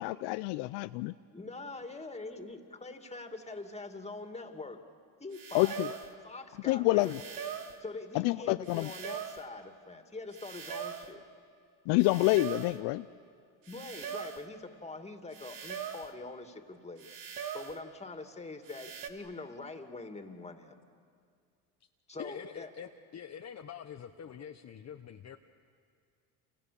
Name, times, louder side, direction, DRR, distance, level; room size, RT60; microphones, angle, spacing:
voice 1, 0.0-1.1 5.5-5.9 6.7-7.2 8.1-8.9 11.9-13.0, left 20 dB, 70° left, 13 dB, 0.6 m, -27 dB
voice 2, 1.3-4.9 5.2-7.1 7.8-11.2 13.7-20.8 22.1-22.7, left 3 dB, 15° left, 6 dB, 2.6 m, -44 dB
sound 1, 5.3-6.1 7.0-7.8 8.7-9.5 10.3-11.1 12.0-12.8 13.7-14.5 15.3-16.1 17.0-17.8 18.6-19.1, right 8 dB, 50° right, 2.4 m, -41 dB
voice 3, 22.2-25.4, left 8 dB, 35° left, 5 dB, 1.1 m, -45 dB
29.0 x 28.5 x 7.1 m, 2.2 s
supercardioid pair, 85°, 43 cm